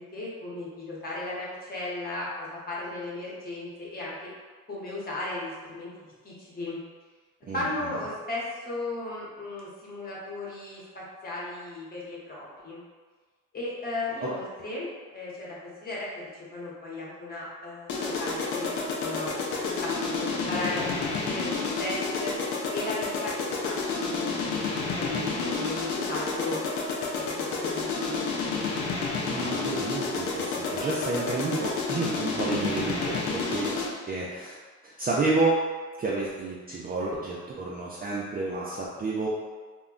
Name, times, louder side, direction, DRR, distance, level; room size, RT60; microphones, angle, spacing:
voice 1, 0.0-4.3 4.7-5.9 6.2-6.8 7.5-12.8 13.5-18.7 19.0-22.3 22.7-24.3 25.0-26.6 26.9-28.6, left 2 dB, 30° left, -6 dB, 1.0 m, -36 dB
voice 2, 7.4-7.9 14.2-14.3 29.2-33.8 34.1-34.6 34.8-35.7 36.0-39.3, right 3 dB, 30° right, -5 dB, 0.4 m, -30 dB
sound 1, 17.9-34.1, left 4 dB, 80° left, 0.5 m, -30 dB
2.2 x 2.1 x 3.7 m, 1.4 s
cardioid pair, 90°, 30 cm